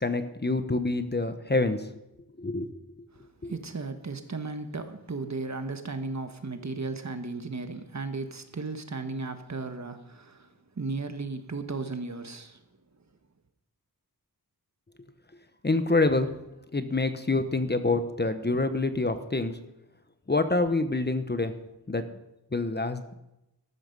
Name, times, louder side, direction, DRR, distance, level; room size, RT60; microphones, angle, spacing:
voice 1, 0.0-1.9 2.4-2.7 3.4-3.5 15.6-16.3 16.7-19.6 20.3-21.5 21.9-22.0 22.5-23.2, left 2 dB, 25° left, 1.0 m, -26 dB
voice 2, 3.1-12.6, right 3 dB, 45° right, 1.4 m, -35 dB
13.5 x 12.5 x 5.4 m
wide cardioid pair, 100°, 38 cm